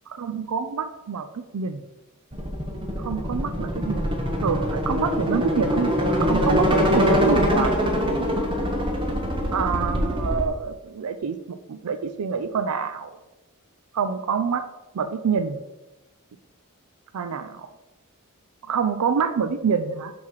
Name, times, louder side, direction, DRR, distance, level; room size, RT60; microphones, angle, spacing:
voice 1, 0.2-1.8 3.0-7.8 9.5-13.2 13.9-14.7 14.9-15.6 17.1-17.7 18.6-20.1, right 6 dB, 90° right, 10 dB, 0.4 m, -27 dB
sound 1, 2.3-10.5, equal, 20° right, 1.0 m, -23 dB
6.0 x 5.6 x 4.7 m, 1.0 s
head